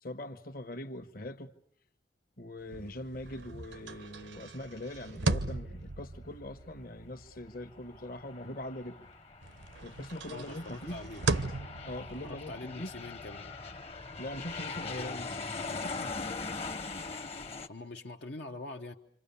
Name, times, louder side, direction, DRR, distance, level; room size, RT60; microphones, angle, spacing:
voice 1, 0.0-1.5 2.4-9.1 9.8-11.0 11.8-12.9 14.2-15.3 15.5-16.2, left 1 dB, 50° left, 1.3 m, -42 dB
sound 1, 2.6-9.1 9.4-14.8, right 3 dB, 85° right, 1.0 m, -38 dB
Aircraft, 7.5-17.7, left 4 dB, 35° left, 1.0 m, -41 dB
voice 2, 10.3-11.3 12.2-13.5 15.0-15.1 17.7-19.0, left 2 dB, 70° left, 1.0 m, -44 dB
28.0 x 26.0 x 7.0 m
head